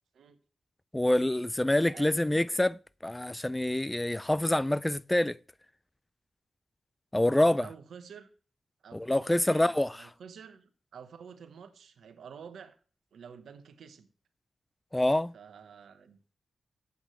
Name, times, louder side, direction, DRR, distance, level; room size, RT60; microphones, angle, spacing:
voice 1, 0.9-5.4 7.1-7.7 8.9-9.9 14.9-15.3, left 1 dB, 15° left, 0.4 m, -26 dB
voice 2, 1.9-2.6 7.3-8.3 8.8-12.8 13.1-14.1 15.3-16.4, right 7 dB, 80° right, 1.1 m, -49 dB
14.5 x 8.2 x 3.2 m
cardioid pair, 50°, 0 cm